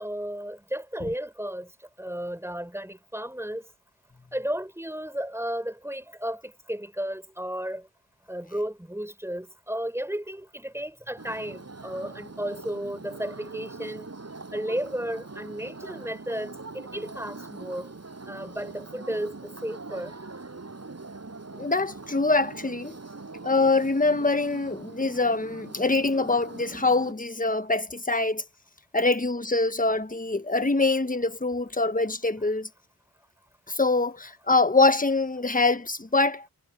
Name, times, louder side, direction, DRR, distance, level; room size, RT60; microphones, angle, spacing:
voice 1, 0.0-1.7 2.0-3.7 4.3-7.9 8.3-14.1 14.5-17.9 18.3-20.1, equal, 5° right, 4.4 m, -33 dB
sound 1, 11.2-27.1, right 3 dB, 40° right, 6.5 m, -42 dB
voice 2, 21.6-23.0 23.4-28.4 28.9-32.7 33.7-36.4, left 3 dB, 20° left, 1.4 m, -24 dB
cardioid pair, 65°, 37 cm